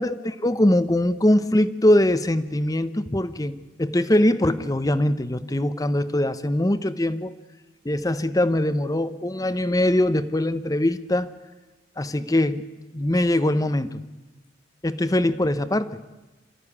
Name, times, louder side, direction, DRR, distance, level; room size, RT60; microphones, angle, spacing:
voice 1, 0.0-7.4 7.8-11.4 12.0-12.7 12.9-14.0 14.8-16.0, left 1 dB, 20° left, 13 dB, 0.8 m, -22 dB
27.5 x 14.0 x 9.9 m, 1.2 s
head